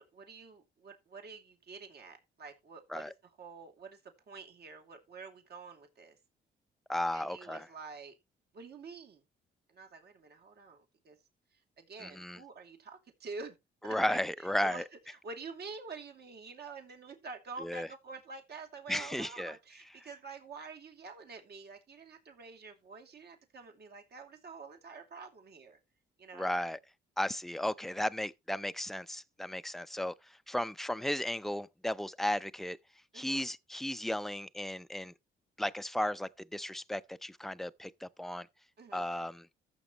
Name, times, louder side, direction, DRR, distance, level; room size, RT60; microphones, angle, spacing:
voice 1, 0.0-3.1 3.4-4.0 4.3-6.2 7.1-8.1 8.5-9.2 9.7-11.2 11.8-13.5 13.8-25.8 26.2-26.6 33.1-33.4 38.8-39.0, right 4 dB, 55° right, 2.7 m, -48 dB
voice 2, 6.9-7.6 12.0-12.4 13.9-14.8 17.6-17.9 18.9-19.6 26.3-26.8 27.2-30.1 30.5-32.8 33.1-35.1 35.6-38.5 38.9-39.5, left 1 dB, ahead, 0.6 m, -35 dB
14.5 x 7.0 x 3.0 m
cardioid pair, 90°, 20 cm